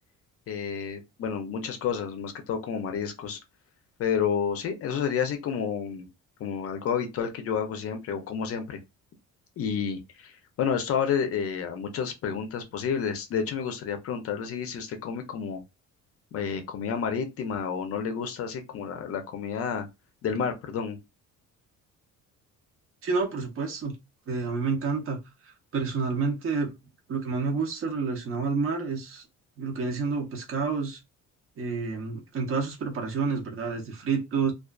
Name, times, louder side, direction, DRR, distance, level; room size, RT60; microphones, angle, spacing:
voice 1, 0.5-3.4 4.0-6.1 6.4-8.8 9.6-15.6 16.3-19.9 20.2-21.0, left 7 dB, 45° left, 0.5 m, -30 dB
voice 2, 23.0-24.0 24.3-25.2 25.4-26.7 27.1-29.2 29.6-31.0 31.6-34.5, right 4 dB, 45° right, 0.7 m, -29 dB
2.4 x 2.3 x 2.2 m
cardioid pair, 150°, 31 cm